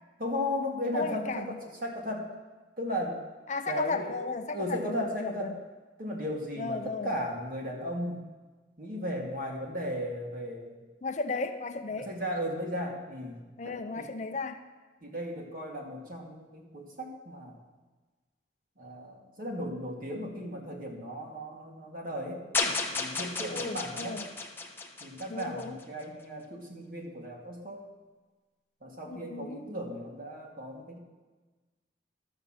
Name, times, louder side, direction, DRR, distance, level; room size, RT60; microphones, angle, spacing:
voice 1, 0.2-2.3 2.8-3.2 3.7-4.2 4.5-5.5 6.0-8.2 8.8-10.8 12.1-13.4 13.6-14.1 15.0-17.6 18.8-22.4 22.9-24.2 25.0-27.9 28.8-31.0, equal, 50° right, -1 dB, 2.1 m, -36 dB
voice 2, 0.9-1.6 3.5-5.6 6.6-7.1 11.0-12.1 13.6-14.6 23.5-24.3 25.3-25.8 29.1-29.7, left 3 dB, 40° left, 8 dB, 0.5 m, -35 dB
sound 1, 22.5-25.8, left 3 dB, 10° left, 0.9 m, -33 dB
12.5 x 7.4 x 6.4 m, 1.3 s
head